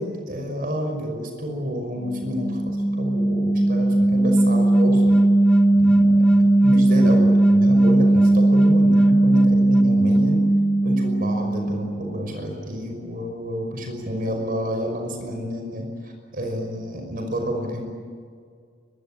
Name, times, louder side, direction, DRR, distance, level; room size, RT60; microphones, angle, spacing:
voice 1, 0.0-5.2 5.7-10.4 10.8-17.9, equal, 50° right, 3 dB, 5.7 m, -29 dB
sound 1, 2.0-12.2, right 1 dB, 5° left, 2.1 m, -18 dB
24.5 x 23.5 x 9.0 m, 2.1 s
head